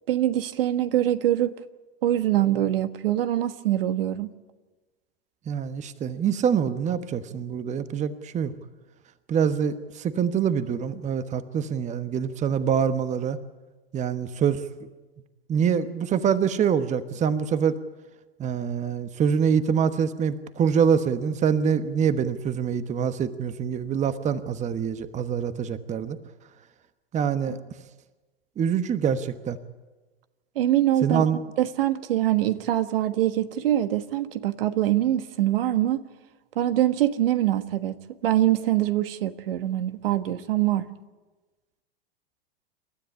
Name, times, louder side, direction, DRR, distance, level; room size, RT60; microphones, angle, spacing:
voice 1, 0.1-1.6 2.0-4.3 30.5-31.2 31.6-36.0 36.5-40.9, right 13 dB, 65° right, 1.4 m, -24 dB
voice 2, 5.5-8.5 9.3-13.4 13.9-14.9 15.5-17.8 18.4-26.2 27.1-27.6 28.6-29.6 31.0-31.4, right 7 dB, 25° right, 1.2 m, -25 dB
28.5 x 13.0 x 9.9 m
hypercardioid pair, 105°, 31 cm